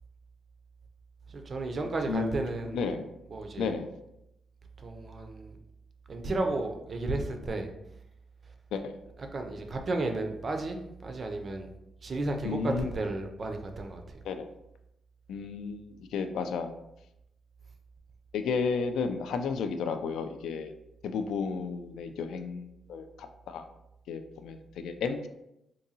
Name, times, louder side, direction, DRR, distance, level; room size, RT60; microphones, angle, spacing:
voice 1, 1.3-2.9 3.3-3.7 4.8-5.6 6.1-7.7 9.2-11.7 12.0-14.2, right 2 dB, 30° right, 4 dB, 0.4 m, -33 dB
voice 2, 2.1-2.4 2.7-3.1 3.6-3.9 8.7-8.9 12.4-12.8 14.2-14.5 15.3-16.7 18.3-20.7 21.0-23.6 24.1-25.3, left 5 dB, 90° left, 7 dB, 0.3 m, -33 dB
3.8 x 2.6 x 2.7 m, 0.85 s
wide cardioid pair, 180°, 0 cm